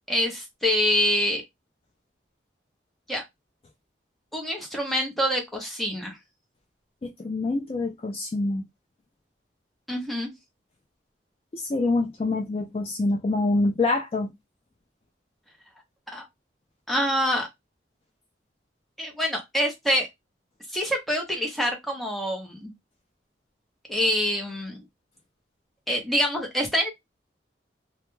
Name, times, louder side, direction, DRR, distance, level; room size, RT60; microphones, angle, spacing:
voice 1, 0.1-1.4 3.1-3.2 4.3-6.2 9.9-10.3 16.1-16.2 16.9-17.5 19.0-20.1 20.7-22.7 23.9-24.8 25.9-26.9, equal, ahead, 0.6 m, -26 dB
voice 2, 7.0-8.7 11.5-14.3, left 2 dB, 30° left, 0.3 m, -26 dB
2.2 x 2.2 x 3.0 m
head